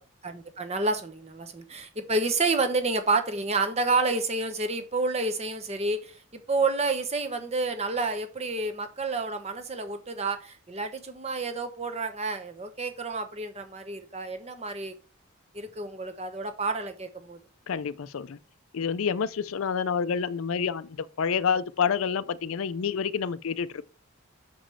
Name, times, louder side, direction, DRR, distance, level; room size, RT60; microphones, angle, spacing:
voice 1, 0.2-6.1 6.5-14.9 15.5-17.4, right 3 dB, 30° right, 1.0 m, -29 dB
voice 2, 17.7-18.4 18.7-23.7, left 6 dB, 75° left, 0.4 m, -28 dB
6.2 x 5.1 x 5.6 m
head